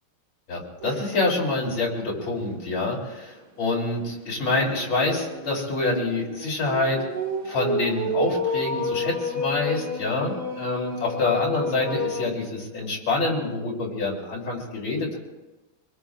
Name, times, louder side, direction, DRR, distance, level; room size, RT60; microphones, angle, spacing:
voice 1, 0.5-7.0 7.4-15.2, left 2 dB, 75° left, -2 dB, 3.8 m, -26 dB
sound 1, 0.8-1.2 1.6-1.7 2.1-2.2 4.3-12.2, left 1 dB, 20° right, 1.5 m, -30 dB
25.5 x 20.5 x 2.4 m, 1.1 s
omnidirectional pair, 2.2 m